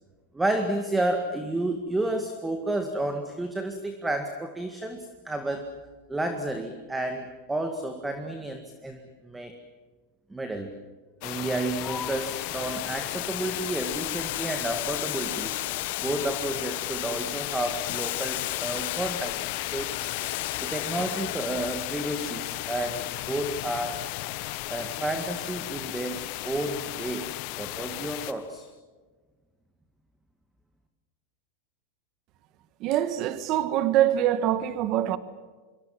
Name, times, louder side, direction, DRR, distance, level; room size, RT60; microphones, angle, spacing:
voice 1, 0.3-5.7 6.1-9.6 10.3-10.7 11.2-15.5 16.0-20.1 20.6-24.0 24.7-27.3 27.6-28.7, right 1 dB, 5° right, 1.9 m, -31 dB
sound 1, 11.2-28.3, left 20 dB, 50° left, 1.0 m, -36 dB
Boiling, 11.7-28.5, left 16 dB, 70° left, 1.1 m, -37 dB
sound 2, 11.8-19.5, left 5 dB, 15° left, 1.5 m, -47 dB
voice 2, 32.8-35.2, right 12 dB, 40° right, 1.6 m, -24 dB
25.5 x 23.5 x 7.6 m
supercardioid pair, 150°, 0 cm